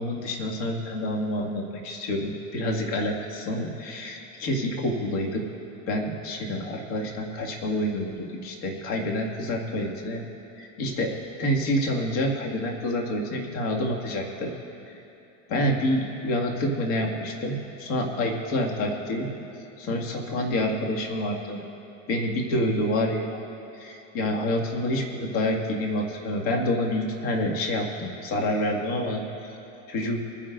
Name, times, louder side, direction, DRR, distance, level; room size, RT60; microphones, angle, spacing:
voice 1, 0.0-5.4 5.9-10.2 10.6-11.1 11.4-14.5 14.9-15.0 15.5-19.3 19.8-21.6 22.1-23.4 23.7-29.5 29.9-30.2, left 1 dB, 70° left, 0 dB, 2.3 m, -28 dB
26.5 x 10.5 x 2.6 m, 2.9 s
supercardioid pair, 150°, 41 cm